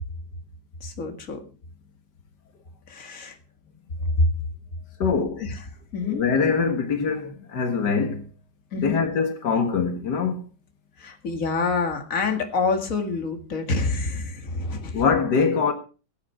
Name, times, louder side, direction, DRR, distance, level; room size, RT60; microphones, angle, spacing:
voice 1, 0.8-1.4 2.9-3.4 4.2-4.3 5.4-5.6 5.9-6.3 8.7-8.9 11.0-15.0, left 3 dB, 55° left, 2.4 m, -26 dB
voice 2, 5.0-5.4 6.0-8.2 8.8-10.4 14.9-15.7, left 5 dB, 90° left, 2.2 m, -23 dB
17.5 x 8.9 x 4.9 m
omnidirectional pair, 1.8 m